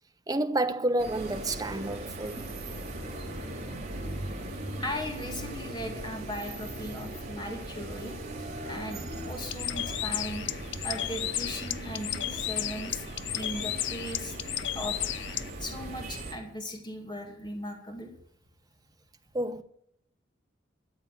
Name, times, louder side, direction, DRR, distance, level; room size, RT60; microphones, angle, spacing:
voice 1, 0.3-2.5 3.3-3.4 4.2-4.3 19.3-19.6, right 1 dB, 20° right, 0.8 m, -30 dB
sound 1, 1.0-16.3, right 1 dB, 35° right, 3.0 m, -39 dB
voice 2, 4.8-8.1 8.6-10.4 10.8-13.1 13.3-14.3 14.7-15.0 15.6-18.1, equal, 25° left, 2.3 m, -38 dB
Bird, 9.4-15.5, left 12 dB, 65° left, 0.5 m, -34 dB
13.5 x 7.9 x 7.7 m
head